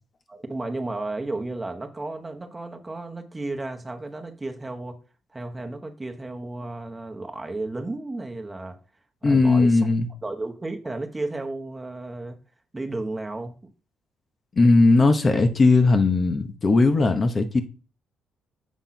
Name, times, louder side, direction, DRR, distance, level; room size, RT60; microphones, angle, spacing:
voice 1, 0.3-5.0 5.3-8.8 9.2-9.9 10.2-12.4 12.7-13.6, right 2 dB, 20° right, 1.2 m, -33 dB
voice 2, 9.2-10.1 14.6-17.6, left 3 dB, 35° left, 1.1 m, -18 dB
7.2 x 3.5 x 5.9 m
cardioid pair, 90°, 0 cm